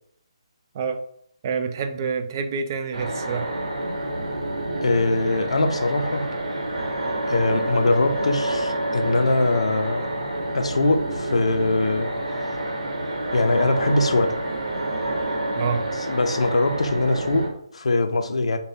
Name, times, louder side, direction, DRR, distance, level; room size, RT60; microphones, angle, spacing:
voice 1, 1.4-3.5 15.5-15.9, right 5 dB, 35° right, 0.3 m, -27 dB
sound 1, 2.9-17.5, right 1 dB, 70° right, 1.1 m, -28 dB
voice 2, 4.8-6.3 7.3-10.1 10.5-12.1 12.4-12.6 13.3-14.4 16.1-18.6, left 2 dB, 75° left, 0.4 m, -22 dB
3.2 x 2.1 x 2.5 m
figure-of-eight pair, 150°, 3 cm